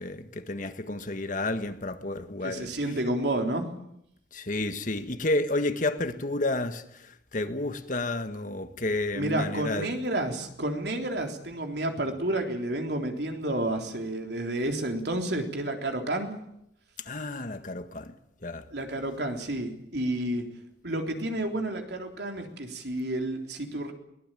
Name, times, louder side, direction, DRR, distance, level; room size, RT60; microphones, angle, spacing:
voice 1, 0.0-2.7 4.3-9.9 17.0-18.1 18.4-18.6, left 2 dB, 50° left, 1.6 m, -31 dB
voice 2, 2.4-3.7 9.1-16.3 18.7-20.4 20.8-23.9, right 1 dB, 70° right, 3.7 m, -30 dB
22.5 x 19.0 x 9.1 m
head